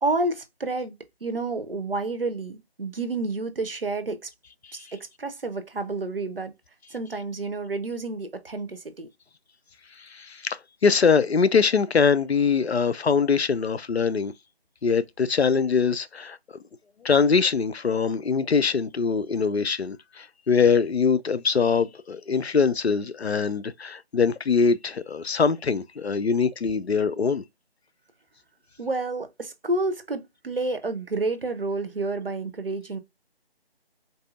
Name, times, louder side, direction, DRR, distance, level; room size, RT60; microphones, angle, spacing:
voice 1, 0.0-4.3 4.7-6.5 6.9-9.1 28.8-33.0, right 2 dB, 60° right, 0.8 m, -30 dB
voice 2, 10.0-14.3 14.8-16.4 17.0-27.4, left 5 dB, 80° left, 0.5 m, -23 dB
4.0 x 2.7 x 2.3 m
figure-of-eight pair, 160°, 31 cm